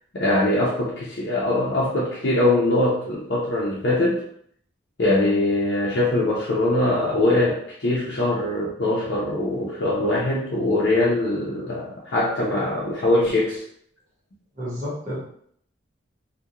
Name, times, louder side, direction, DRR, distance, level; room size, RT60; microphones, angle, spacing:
voice 1, 0.1-4.2 5.0-13.6, left 1 dB, 60° left, -6 dB, 0.5 m, -22 dB
voice 2, 14.6-15.2, equal, 40° right, -7 dB, 1.0 m, -31 dB
2.3 x 2.1 x 2.8 m, 0.65 s
head